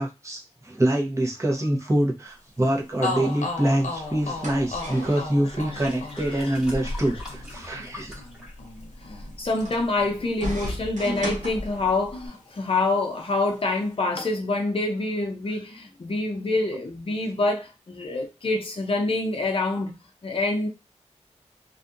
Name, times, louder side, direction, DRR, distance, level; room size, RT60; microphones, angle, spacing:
voice 1, 0.0-8.2 11.0-11.2, right 1 dB, 25° right, 0.8 m, -25 dB
sound 1, 2.6-2.7 3.0-10.9 11.1-12.3, left 3 dB, 90° left, 0.7 m, -36 dB
sound 2, 4.0-12.3, equal, 80° right, 0.9 m, -37 dB
sound 3, 5.5-9.0 9.3-9.8 10.5-10.6, left 2 dB, 5° right, 1.5 m, -46 dB
voice 2, 6.2-6.5 6.8-6.9 9.4-20.0 20.2-20.7, left 2 dB, 50° left, 0.6 m, -26 dB
2.6 x 2.3 x 2.5 m
wide cardioid pair, 85°, 12 cm